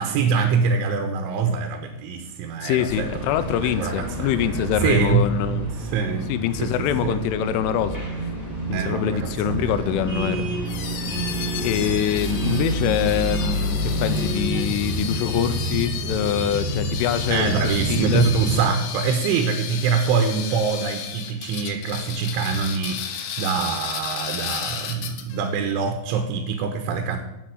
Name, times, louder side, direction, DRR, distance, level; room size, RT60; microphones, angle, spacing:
voice 1, 0.0-3.1 3.5-5.2 5.8-6.3 6.6-7.2 8.7-9.8 17.3-27.2, right 6 dB, 80° right, 5 dB, 3.3 m, -24 dB
voice 2, 2.6-5.7 6.3-8.0 8.7-10.5 11.6-17.5 17.9-18.2, left 10 dB, 85° left, 12 dB, 3.3 m, -24 dB
sound 1, 2.9-18.6, right 1 dB, 5° left, 2.5 m, -28 dB
sound 2, 10.7-25.5, left 8 dB, 70° left, 2.9 m, -33 dB
10.5 x 8.2 x 7.8 m, 0.96 s
omnidirectional pair, 5.5 m